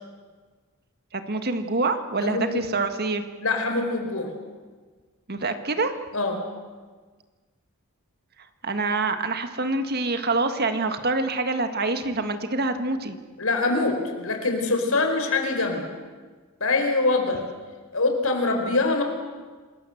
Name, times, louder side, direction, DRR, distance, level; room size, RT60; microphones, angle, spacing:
voice 1, 1.1-3.2 5.3-6.0 8.6-13.2, right 3 dB, 45° right, 8 dB, 1.7 m, -26 dB
voice 2, 2.2-2.6 3.4-4.3 6.1-6.4 13.4-15.8 16.6-17.4 17.9-19.0, left 3 dB, 70° left, 4 dB, 4.6 m, -24 dB
27.5 x 20.0 x 7.9 m, 1.4 s
head